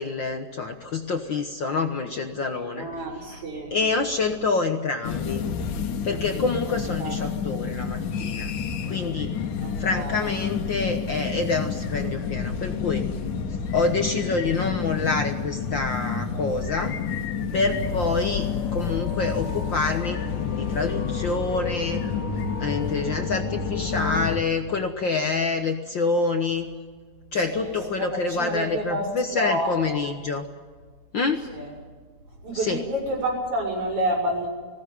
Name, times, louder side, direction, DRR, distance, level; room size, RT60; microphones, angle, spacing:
voice 1, 0.0-2.9 3.3-3.4 3.7-5.4 6.0-8.5 8.9-9.3 9.8-13.0 13.7-17.0 17.5-20.2 20.6-22.0 22.6-26.7 27.3-30.4 31.1-31.4 32.5-32.8, left 4 dB, 55° left, 5 dB, 1.3 m, -27 dB
voice 2, 2.8-3.7 6.6-7.3 9.6-10.3 27.3-29.9 31.5-31.7 32.4-34.5, equal, 70° right, -7 dB, 7.5 m, -29 dB
sound 1, 5.0-24.4, left 6 dB, 75° left, 2.9 m, -30 dB
sound 2, 17.8-24.4, left 7 dB, 25° left, 4.1 m, -34 dB
20.5 x 17.5 x 9.4 m, 1.5 s
omnidirectional pair, 3.6 m